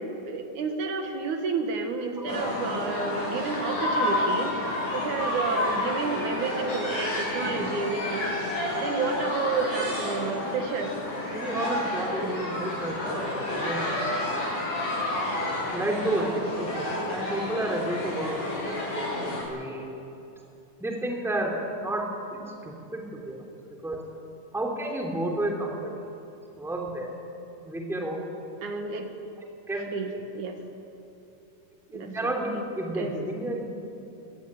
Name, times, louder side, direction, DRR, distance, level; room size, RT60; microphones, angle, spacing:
voice 1, 0.0-8.3 8.8-10.9 28.6-29.1 29.9-30.6 31.9-32.6 32.9-33.2, right 4 dB, 75° right, 5 dB, 3.1 m, -31 dB
sound 1, 2.3-19.4, left 1 dB, 80° left, 8.9 m, -30 dB
voice 2, 11.3-13.9 15.4-20.0 20.8-23.4 23.8-24.0 24.5-25.9 26.5-27.2 27.6-28.2 29.7-29.9 31.9-33.6, right 1 dB, ahead, 0 dB, 2.7 m, -31 dB
23.0 x 17.5 x 9.6 m, 2.8 s
omnidirectional pair, 3.6 m